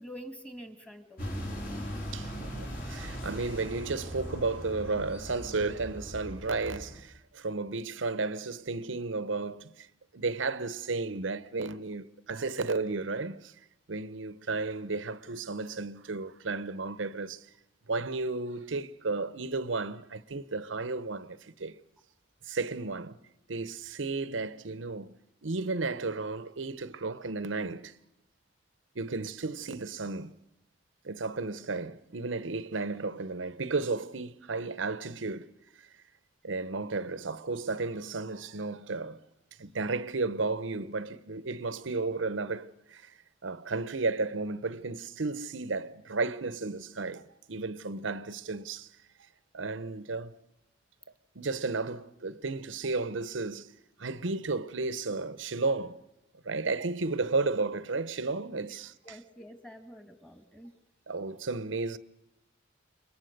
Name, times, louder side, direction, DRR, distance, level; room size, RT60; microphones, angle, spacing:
voice 1, 0.0-1.6 58.7-58.8 59.0-60.7, equal, 5° left, 2.0 m, -47 dB
sound 1, 1.2-7.0, equal, 50° left, 5.1 m, -39 dB
voice 2, 2.1-9.9 10.1-13.5 13.9-17.5 17.9-21.8 22.4-23.1 23.5-25.2 25.4-27.9 28.9-30.3 31.0-35.5 35.8-35.9 36.4-39.2 39.6-43.1 43.4-47.2 47.5-48.9 49.5-50.3 51.3-53.7 54.0-56.0 56.4-59.2 61.1-62.0, right 3 dB, 85° right, 0.9 m, -33 dB
28.5 x 22.5 x 6.7 m
head